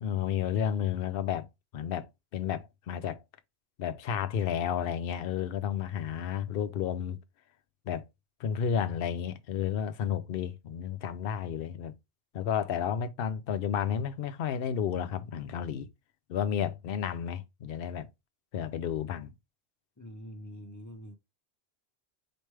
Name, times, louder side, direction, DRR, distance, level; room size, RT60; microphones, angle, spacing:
voice 1, 0.0-1.5 1.7-2.1 2.3-3.2 3.8-7.2 7.9-8.0 8.4-11.9 12.3-15.9 16.3-18.1 18.5-19.3, left 8 dB, 65° left, 0.8 m, -32 dB
voice 2, 20.0-21.2, equal, 20° left, 0.6 m, -45 dB
4.8 x 3.2 x 3.2 m
omnidirectional pair, 1.1 m